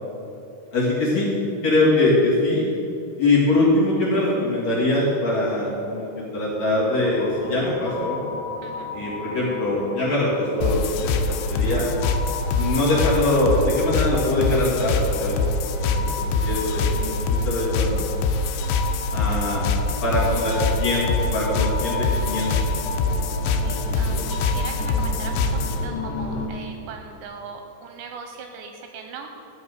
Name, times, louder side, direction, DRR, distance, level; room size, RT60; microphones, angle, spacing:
voice 1, 0.7-1.3 1.6-2.7 3.2-8.2 8.9-11.1 11.5-11.9 12.5-15.5 15.8-18.3 19.1-19.7 20.0-22.5 23.6-24.2, left 2 dB, 45° left, -7 dB, 2.7 m, -23 dB
sound 1, 6.9-26.5, left 3 dB, 65° left, 2.4 m, -34 dB
voice 2, 8.6-8.9 12.3-12.5 18.8-19.0 23.5-29.5, right 5 dB, 80° right, 4 dB, 2.8 m, -40 dB
sound 2, 10.6-25.8, left 3 dB, 90° left, 3.1 m, -24 dB
14.0 x 5.6 x 8.0 m, 2.8 s
omnidirectional pair, 5.5 m